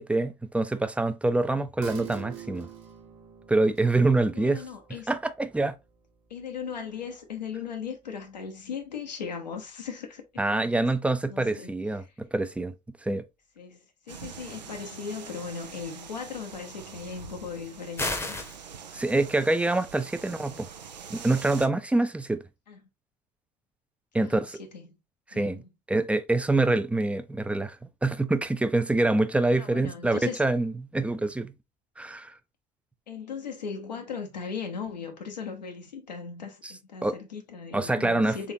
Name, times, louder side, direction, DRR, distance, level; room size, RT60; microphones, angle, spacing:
voice 1, 0.0-2.7 3.5-4.6 5.1-5.8 10.4-12.7 13.0-13.2 18.9-20.7 21.1-22.4 24.1-24.6 25.3-25.6 25.9-27.8 28.0-31.5 32.0-32.3 36.6-36.7 37.0-37.1 37.7-38.4, right 2 dB, 5° right, 0.4 m, -25 dB
sound 1, 1.8-8.8 9.2-9.3, right 9 dB, 60° right, 1.0 m, -47 dB
voice 2, 4.3-5.1 6.3-10.2 10.5-10.9 11.2-11.7 13.6-13.8 14.1-18.4 20.1-20.6 22.7-22.8 24.2-24.5 24.7-25.0 25.3-25.7 29.6-30.4 33.1-38.5, left 6 dB, 85° left, 0.8 m, -38 dB
sound 2, 14.1-21.7, right 7 dB, 85° right, 0.5 m, -44 dB
sound 3, 18.0-18.6, left 2 dB, 10° left, 0.8 m, -30 dB
3.8 x 3.4 x 2.6 m
figure-of-eight pair, 65°, 21 cm